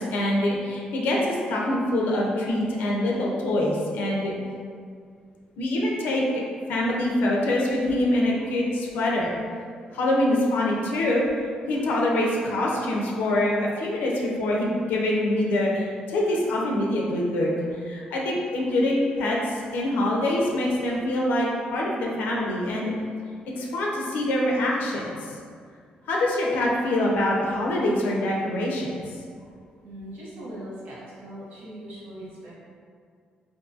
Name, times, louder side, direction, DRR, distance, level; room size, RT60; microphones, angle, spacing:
voice 1, 0.0-4.3 5.6-9.4 9.9-11.3 11.7-17.5 17.8-22.9 23.5-25.4 26.1-29.0, left 1 dB, 85° left, -2 dB, 0.4 m, -25 dB
voice 2, 8.1-8.5 9.9-10.0 11.7-11.8 13.2-13.3 20.9-21.0 23.4-23.5 26.0-26.1 29.4-29.5 29.8-32.5, right 1 dB, 75° right, -8 dB, 0.9 m, -41 dB
2.6 x 2.3 x 2.5 m, 2.2 s
cardioid pair, 105°, 3 cm